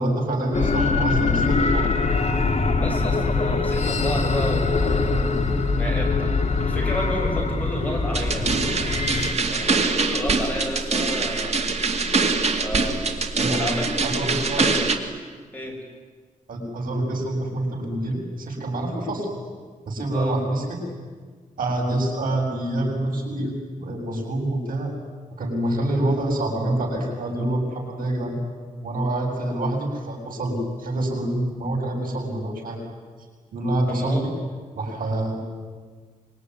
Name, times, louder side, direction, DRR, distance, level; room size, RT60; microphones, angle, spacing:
voice 1, 0.0-2.0 13.4-13.7 14.0-14.7 16.5-19.3 19.9-20.8 21.6-24.9 25.4-28.4 28.8-32.8 33.5-34.3 34.8-35.3, right 1 dB, 85° right, 0 dB, 7.3 m, -26 dB
sound 1, 0.5-9.3, left 3 dB, 50° left, 2.5 m, -23 dB
voice 2, 2.7-5.2 5.8-8.5 9.5-11.7 12.6-14.1 14.6-14.8 15.5-15.8 19.0-19.1 20.1-20.4 33.9-34.2, equal, 10° left, 0 dB, 6.6 m, -31 dB
sound 2, 8.1-15.0, right 4 dB, 50° right, 2.4 m, -24 dB
25.5 x 23.5 x 9.8 m, 1.5 s
wide cardioid pair, 120°, 14 cm